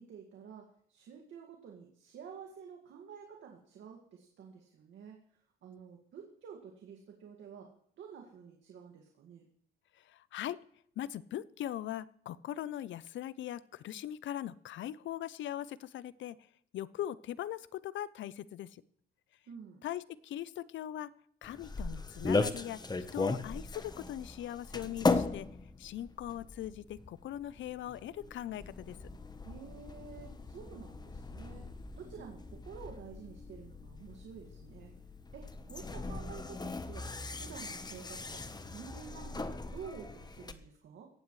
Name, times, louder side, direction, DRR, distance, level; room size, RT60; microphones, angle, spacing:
voice 1, 0.0-5.2 5.6-7.7 8.0-9.5 19.5-19.8 29.4-31.7 31.9-34.9 35.3-37.1 37.4-41.1, right 7 dB, 70° right, 1 dB, 2.1 m, -50 dB
voice 2, 10.1-10.6 11.0-16.4 16.7-18.8 19.8-21.1 21.4-22.8 23.1-25.5 25.8-29.0, left 12 dB, 70° left, 18 dB, 0.6 m, -40 dB
sound 1, 21.4-40.5, left 3 dB, 20° left, 1.0 m, -38 dB
17.5 x 15.0 x 3.3 m, 0.63 s
cardioid pair, 90°, 20 cm